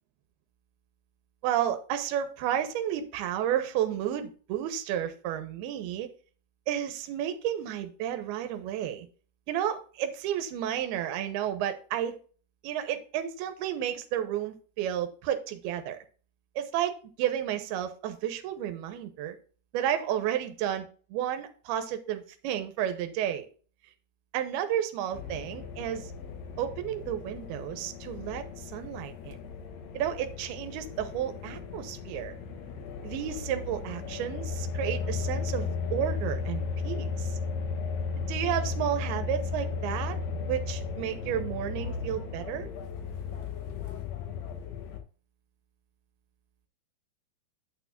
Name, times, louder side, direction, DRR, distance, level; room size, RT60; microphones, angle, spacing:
voice 1, 1.4-6.1 6.7-9.1 9.5-12.2 12.6-16.0 16.6-19.4 19.7-23.4 24.3-26.1 26.6-29.4 29.9-32.4 33.0-37.4 38.3-40.2 40.5-42.7, right 10 dB, 80° right, 7 dB, 2.8 m, -32 dB
sound 1, 25.1-45.0, left 5 dB, 75° left, 1.6 m, -35 dB
9.3 x 8.7 x 2.5 m, 0.40 s
omnidirectional pair, 4.7 m